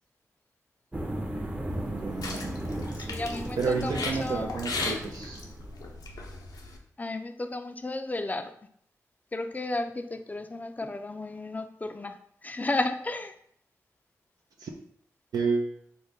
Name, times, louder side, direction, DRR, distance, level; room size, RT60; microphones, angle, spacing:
sound 1, 0.9-5.8, right 1 dB, 20° right, 0.6 m, -36 dB
sound 2, 1.7-6.8, left 3 dB, 80° left, 0.5 m, -37 dB
voice 1, 1.9-2.6 3.6-5.4 14.6-14.7 15.3-15.8, right 4 dB, 80° right, 0 dB, 0.4 m, -30 dB
voice 2, 3.1-4.5 7.0-8.5 9.3-12.2 12.4-13.3, left 2 dB, 25° left, 8 dB, 0.4 m, -33 dB
3.7 x 2.1 x 3.4 m, 0.65 s
cardioid pair, 50°, 6 cm